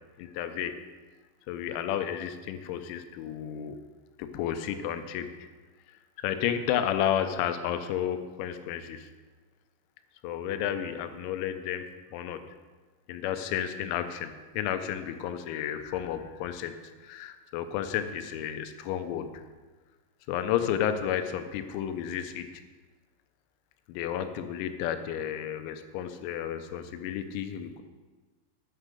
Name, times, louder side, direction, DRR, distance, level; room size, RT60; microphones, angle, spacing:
voice 1, 0.2-0.8 1.5-3.8 4.2-5.3 6.2-9.1 10.2-11.9 12.1-12.4 13.1-16.7 17.0-19.4 20.3-22.5 23.9-27.8, left 10 dB, 90° left, 9 dB, 3.6 m, -32 dB
9.8 x 9.7 x 6.8 m, 1.3 s
omnidirectional pair, 6.0 m